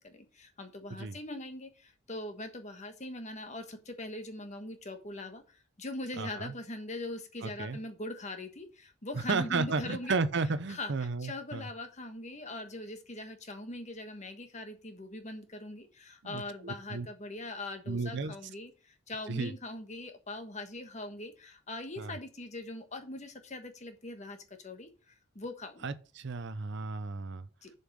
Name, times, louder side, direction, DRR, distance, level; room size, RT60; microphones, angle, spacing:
voice 1, 0.0-10.2 10.7-10.9 11.2-25.9 27.6-27.7, left 2 dB, 35° left, 1.3 m, -42 dB
voice 2, 6.2-6.5 7.4-7.8 9.3-11.7 16.2-17.1 17.9-18.3 19.3-19.5 22.0-22.1 25.8-27.5, right 4 dB, 55° right, 0.6 m, -33 dB
7.0 x 5.5 x 6.3 m
head